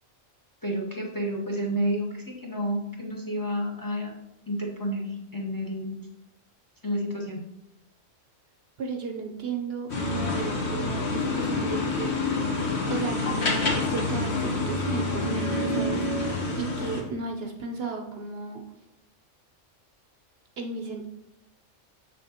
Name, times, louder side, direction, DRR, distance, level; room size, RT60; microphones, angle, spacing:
voice 1, 0.6-4.1 4.5-6.1 6.8-7.4, equal, 20° left, 0 dB, 0.8 m, -30 dB
voice 2, 8.8-12.5 12.9-18.6 20.6-21.1, right 4 dB, 60° right, 4 dB, 0.8 m, -35 dB
sound 1, 9.9-17.0, left 3 dB, 60° left, 1.5 m, -27 dB
6.8 x 6.4 x 2.9 m, 0.87 s
omnidirectional pair, 1.3 m